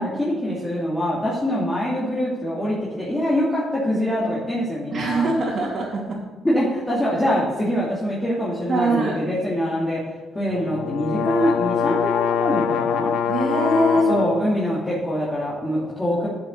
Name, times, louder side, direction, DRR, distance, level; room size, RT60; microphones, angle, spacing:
voice 1, 0.0-5.3 6.4-10.0 10.3-13.1 14.1-16.3, equal, 15° left, -8 dB, 2.7 m, -24 dB
voice 2, 4.9-6.2 8.7-9.2 13.3-14.1, right 1 dB, 45° right, -7 dB, 2.6 m, -22 dB
sound 1, 10.5-14.4, left 7 dB, 85° left, 0.8 m, -24 dB
9.3 x 7.2 x 6.8 m, 1.3 s
cardioid pair, 90°, 0 cm